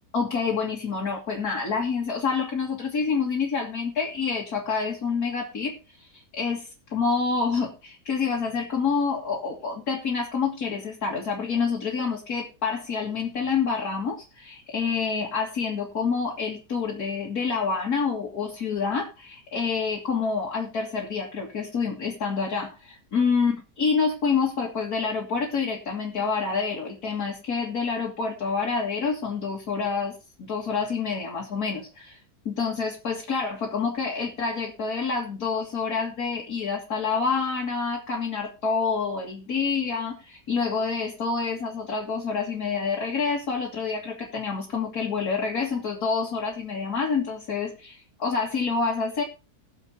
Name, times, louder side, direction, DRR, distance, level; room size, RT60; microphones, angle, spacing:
voice 1, 0.1-32.2 32.5-49.2, left 5 dB, 65° left, 0 dB, 2.4 m, -27 dB
21.0 x 7.2 x 2.8 m, 0.32 s
omnidirectional pair, 1.8 m